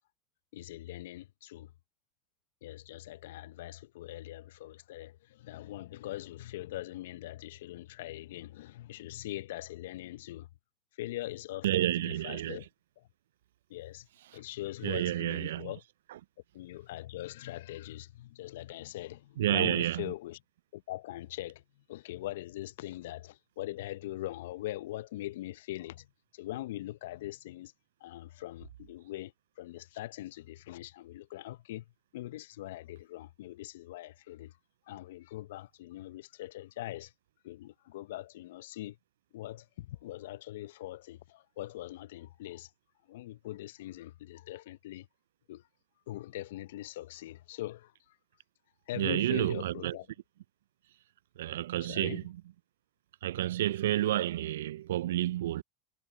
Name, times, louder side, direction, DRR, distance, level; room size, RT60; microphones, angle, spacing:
voice 1, 0.5-1.7 2.6-10.5 10.9-12.6 13.0-13.1 13.7-14.1 14.3-15.8 16.5-20.4 20.7-27.7 28.0-34.6 34.8-37.1 37.4-39.0 39.3-42.7 43.0-45.1 45.5-45.7 46.1-48.2 48.9-50.1 51.8-52.2, left 15 dB, 70° left, 0.7 m, -42 dB
voice 2, 11.6-12.6 14.8-15.7 19.4-20.1 49.0-50.0 51.4-52.2 53.2-55.6, right 13 dB, 75° right, 0.3 m, -30 dB
hypercardioid pair, 75°, 0 cm